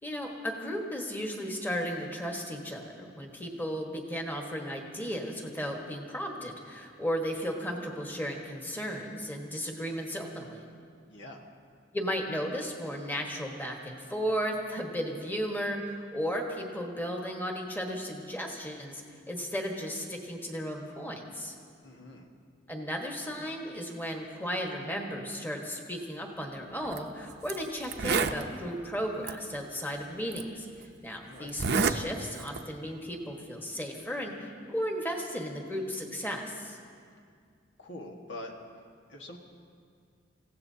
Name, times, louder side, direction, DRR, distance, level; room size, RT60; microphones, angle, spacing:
voice 1, 0.0-10.6 11.9-21.5 22.7-30.7 31.0-36.8, equal, 10° left, 0 dB, 1.5 m, -35 dB
voice 2, 11.1-11.4 21.8-22.3 31.3-31.5 37.8-38.5 39.1-39.4, left 1 dB, 85° left, 1 dB, 1.7 m, -44 dB
Zipper (clothing), 26.8-27.0 27.5-27.6 27.8-28.4 29.3-29.4 30.3-30.4 31.5-32.0 32.3-32.7, right 5 dB, 60° right, 0.6 m, -27 dB
28.0 x 16.0 x 2.8 m, 2.2 s
head